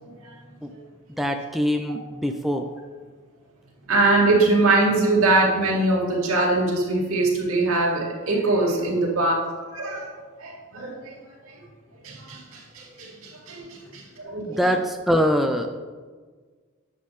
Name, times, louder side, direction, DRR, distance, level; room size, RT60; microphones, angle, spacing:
voice 1, 1.2-2.7 14.4-15.7, equal, ahead, 4 dB, 0.3 m, -23 dB
voice 2, 3.9-9.4 9.7-10.1 10.4-11.1 12.0-13.7 13.9-14.6, right 2 dB, 80° right, -3 dB, 2.2 m, -22 dB
10.0 x 7.3 x 3.2 m, 1.5 s
head